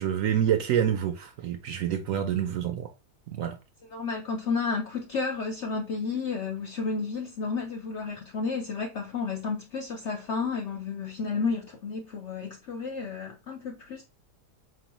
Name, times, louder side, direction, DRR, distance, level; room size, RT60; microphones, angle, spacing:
voice 1, 0.0-2.9 3.3-3.5, right 9 dB, 70° right, 0.8 m, -27 dB
voice 2, 3.9-14.0, left 4 dB, 70° left, 0.6 m, -32 dB
4.5 x 3.0 x 2.9 m
omnidirectional pair, 1.7 m